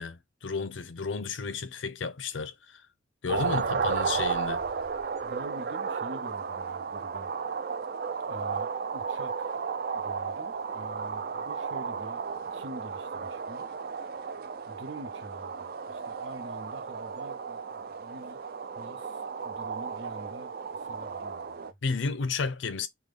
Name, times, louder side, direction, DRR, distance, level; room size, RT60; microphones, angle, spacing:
voice 1, 0.0-2.8 3.2-4.6 21.8-22.9, left 4 dB, 75° left, 0.6 m, -32 dB
sound 1, 3.3-21.7, right 5 dB, 50° right, 0.5 m, -34 dB
voice 2, 3.3-3.8 5.2-7.3 8.3-9.6 9.9-12.2 12.5-14.3 14.6-18.5 18.7-21.8, right 1 dB, 70° right, 1.0 m, -46 dB
3.7 x 2.3 x 3.3 m
head